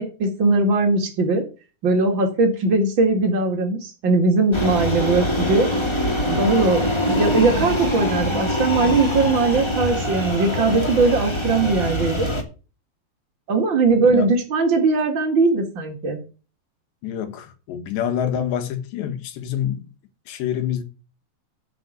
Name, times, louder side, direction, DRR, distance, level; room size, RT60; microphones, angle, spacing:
voice 1, 0.0-1.4 1.8-5.7 6.3-12.3 13.5-16.2, right 3 dB, 40° right, 1.8 m, -20 dB
sound 1, 4.5-12.4, left 1 dB, 20° left, 0.8 m, -23 dB
voice 2, 17.0-19.9 20.3-20.8, left 9 dB, 80° left, 3.8 m, -26 dB
9.1 x 6.7 x 8.6 m
omnidirectional pair, 5.0 m